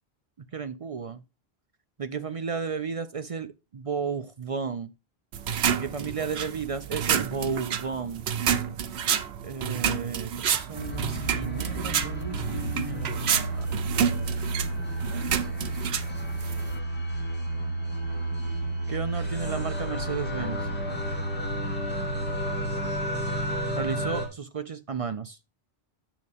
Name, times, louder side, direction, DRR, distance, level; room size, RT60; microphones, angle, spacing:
voice 1, 0.5-1.2 2.0-4.9 5.7-8.3 9.4-14.1 18.9-20.7 23.8-25.4, right 5 dB, 50° right, 0.4 m, -33 dB
sound 1, 5.3-16.8, right 8 dB, 90° right, 1.0 m, -29 dB
sound 2, 10.7-24.3, right 1 dB, 10° left, 2.3 m, -31 dB
8.6 x 6.6 x 3.4 m
omnidirectional pair, 1.0 m